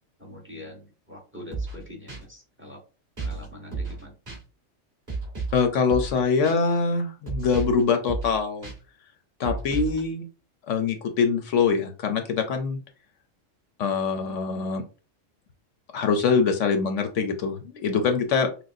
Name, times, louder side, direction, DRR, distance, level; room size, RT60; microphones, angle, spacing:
voice 1, 0.2-2.8 3.2-4.1, left 1 dB, 10° right, 1 dB, 1.0 m, -43 dB
sound 1, 1.5-1.8 2.1-2.2 3.2-3.4 3.7-4.0 4.3-4.4 5.1-5.6 5.9-6.2 6.4-6.6 7.3-7.8 8.1-8.3 8.6-8.7 9.4-10.0, right 3 dB, 30° right, 2.2 m, -32 dB
voice 2, 5.5-8.7 9.4-10.3 10.7-12.8 13.8-14.8 15.9-18.6, left 5 dB, 70° left, 6 dB, 1.0 m, -24 dB
6.0 x 2.2 x 2.6 m, 0.33 s
omnidirectional pair, 1.4 m